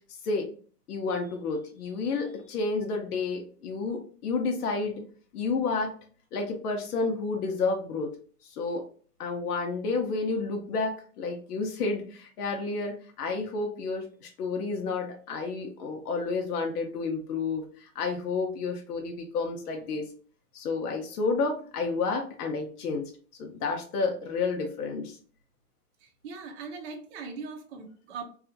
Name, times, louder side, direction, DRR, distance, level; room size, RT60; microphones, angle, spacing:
voice 1, 0.9-5.0 5.3-5.9 6.3-8.1 8.4-8.8 9.2-20.1 20.5-23.0 23.4-25.2, left 4 dB, 70° left, 2 dB, 0.7 m, -30 dB
voice 2, 26.0-28.2, right 4 dB, 45° right, 4 dB, 0.6 m, -40 dB
2.7 x 2.4 x 2.6 m, 0.43 s
hypercardioid pair, 140°, 47 cm